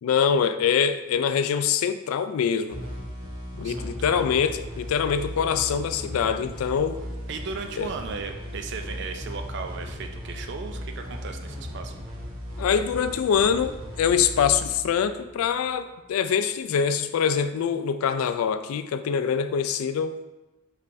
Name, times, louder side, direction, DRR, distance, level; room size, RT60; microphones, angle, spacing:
voice 1, 0.0-2.8 3.5-7.0 7.8-7.9 12.6-20.2, left 7 dB, 80° left, 11 dB, 0.3 m, -24 dB
sound 1, 2.7-16.0, equal, 80° right, 1.0 m, -37 dB
voice 2, 3.6-4.3 7.3-11.9, right 4 dB, 55° right, 5 dB, 0.4 m, -36 dB
5.3 x 3.3 x 2.6 m, 1.0 s
head